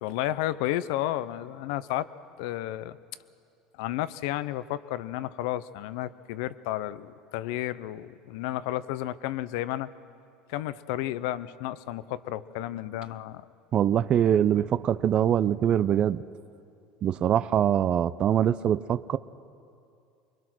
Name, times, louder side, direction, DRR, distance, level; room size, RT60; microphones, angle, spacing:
voice 1, 0.0-2.1 2.4-3.0 3.8-9.9 10.5-13.4, left 14 dB, 75° left, 15 dB, 0.7 m, -32 dB
voice 2, 13.7-16.2 17.0-19.2, right 10 dB, 40° right, 16 dB, 0.5 m, -23 dB
24.5 x 22.0 x 6.2 m, 2.5 s
supercardioid pair, 105°, 2 cm